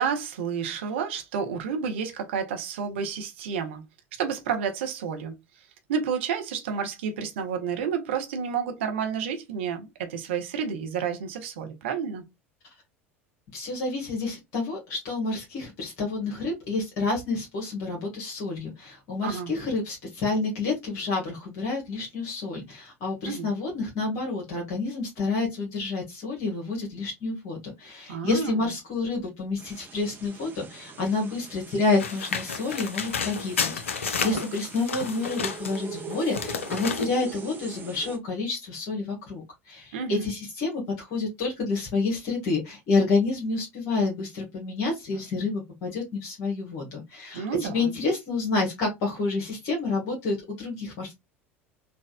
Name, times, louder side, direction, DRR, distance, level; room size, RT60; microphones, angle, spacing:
voice 1, 0.0-3.8 4.1-5.3 5.9-12.2 19.2-19.5 23.2-23.5 28.1-28.6 34.2-34.4 39.9-40.3 47.3-47.9, right 6 dB, 65° right, 0.7 m, -30 dB
voice 2, 13.5-51.2, left 3 dB, 50° left, 1.3 m, -29 dB
sound 1, 29.6-38.2, right 6 dB, 25° right, 0.8 m, -43 dB
sound 2, 32.0-35.8 36.1-37.1, left 6 dB, 75° left, 0.4 m, -31 dB
4.2 x 2.4 x 2.2 m
figure-of-eight pair, 75°, 7 cm